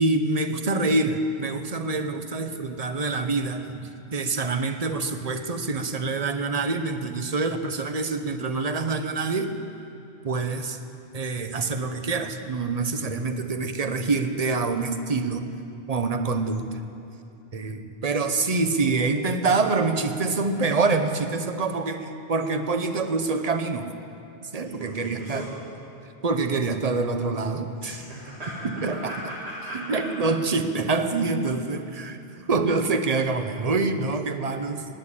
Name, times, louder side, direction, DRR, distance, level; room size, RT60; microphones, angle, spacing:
voice 1, 0.0-9.5 10.2-10.8 11.1-15.4 15.9-16.7 17.5-23.9 24.5-25.5 26.2-28.0 28.6-29.1 29.7-32.2 32.5-34.8, right 3 dB, 40° right, 8 dB, 0.9 m, -26 dB
voice 2, 24.6-25.5 27.8-30.0 32.3-32.4, right 1 dB, 75° right, -6 dB, 2.2 m, -37 dB
19.5 x 7.9 x 8.3 m, 2.7 s
omnidirectional pair, 1.1 m